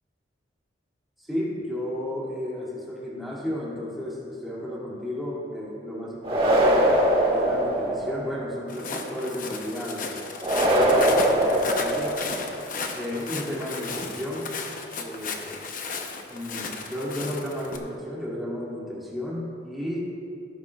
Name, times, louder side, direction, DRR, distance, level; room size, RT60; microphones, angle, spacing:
voice 1, 1.2-6.9 7.3-12.1 12.9-14.5 15.0-15.6 16.3-20.0, left 1 dB, ahead, -7 dB, 2.5 m, -33 dB
sound 1, 6.2-8.3 10.4-12.5, right 1 dB, 30° right, 1.8 m, -22 dB
Walk footsteps, 8.7-17.8, left 4 dB, 45° left, 0.8 m, -34 dB
18.0 x 10.0 x 2.4 m, 2.5 s
head